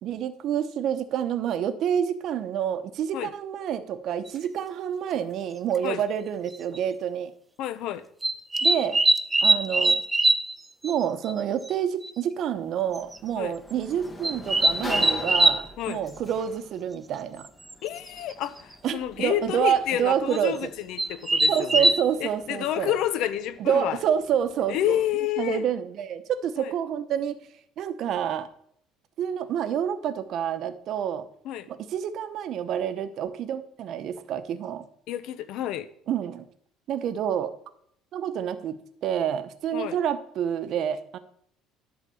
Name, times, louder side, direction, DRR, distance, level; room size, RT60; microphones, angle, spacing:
voice 1, 0.0-7.3 8.6-9.0 9.4-10.0 10.8-17.5 18.8-20.7 21.5-22.9 23.6-25.0 25.4-27.4 27.8-28.5 29.2-31.2 31.7-34.9 36.1-36.5 36.9-37.5 38.1-41.2, right 9 dB, 55° right, 11 dB, 0.9 m, -28 dB
sound 1, 4.3-4.4 5.7-5.8 6.5-6.8 8.2-10.5 10.8-10.9 11.3-11.4 11.7-11.8 12.0-12.1 12.9-13.2 14.2-15.6 17.7-17.8 18.1-18.4 20.3-20.4 21.0-21.9, right 2 dB, 10° right, 0.6 m, -22 dB
voice 2, 7.6-8.0 13.4-13.5 15.8-16.0 17.8-21.9 22.2-24.0 24.7-25.7 26.6-26.7 31.4-31.7 35.1-35.9 39.7-39.9, left 12 dB, 65° left, 14 dB, 0.7 m, -29 dB
Sliding door, 12.5-25.2, left 2 dB, 20° left, 1.0 m, -43 dB
11.5 x 4.0 x 7.0 m, 0.67 s
cardioid pair, 125°, 0 cm